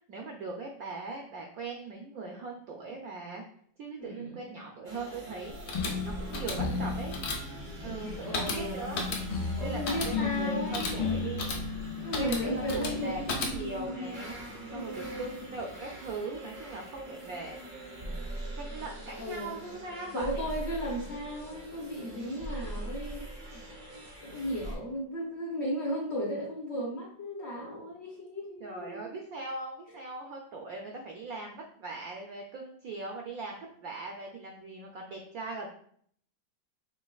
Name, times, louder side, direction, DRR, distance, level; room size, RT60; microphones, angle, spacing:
voice 1, 0.1-3.4 3.8-7.2 7.8-9.0 9.6-11.5 12.1-14.3 14.7-20.4 28.6-35.7, right 3 dB, 75° right, 1 dB, 0.8 m, -40 dB
voice 2, 4.0-4.6 6.6-6.9 7.8-9.0 9.6-11.3 12.0-13.1 14.7-15.5 19.1-19.6 20.1-23.3 23.5-23.6 24.2-29.1, equal, 50° left, -4 dB, 0.9 m, -36 dB
sound 1, 4.8-24.7, right 1 dB, 50° right, 0.6 m, -41 dB
sound 2, 5.5-13.9, left 3 dB, 65° left, 1.2 m, -36 dB
sound 3, 5.7-13.2, left 5 dB, 90° left, 1.4 m, -36 dB
5.2 x 3.1 x 2.3 m, 0.62 s
omnidirectional pair, 2.1 m